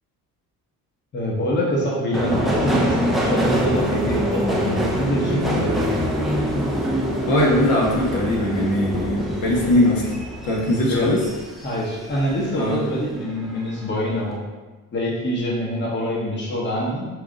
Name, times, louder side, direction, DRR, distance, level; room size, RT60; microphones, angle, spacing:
voice 1, 1.1-5.9 10.9-11.1 11.6-14.4 14.9-17.0, equal, 30° left, -4 dB, 1.0 m, -24 dB
Subway metro underground, 2.1-12.9 13.2-13.9 14.2-14.3, equal, ahead, 0.4 m, -25 dB
voice 2, 7.2-10.1 10.4-11.2 12.6-12.8, left 1 dB, 80° left, -3 dB, 1.2 m, -20 dB
4.8 x 2.5 x 3.8 m, 1.3 s
cardioid pair, 140°, 34 cm